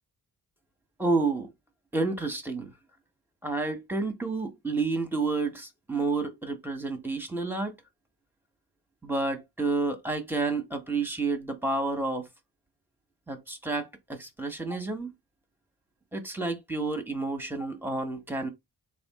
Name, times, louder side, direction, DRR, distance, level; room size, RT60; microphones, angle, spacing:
voice 1, 1.0-1.5 1.9-2.7 3.4-7.7 9.0-12.3 13.3-15.1 16.1-18.5, right 3 dB, 5° right, 1.2 m, -30 dB
3.6 x 2.5 x 3.6 m
cardioid pair, 70°, 41 cm